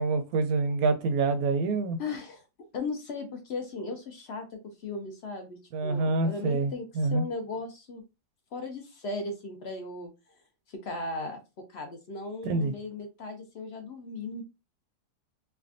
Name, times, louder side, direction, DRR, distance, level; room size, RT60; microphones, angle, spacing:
voice 1, 0.0-2.0 5.7-7.2 12.4-12.7, right 3 dB, 70° right, 1.0 m, -26 dB
voice 2, 2.0-2.4 2.7-4.4 4.8-6.8 7.1-8.0 8.5-10.1 10.7-11.4 11.7-14.4, left 3 dB, 60° left, 0.7 m, -37 dB
3.3 x 2.2 x 2.5 m
omnidirectional pair, 1.7 m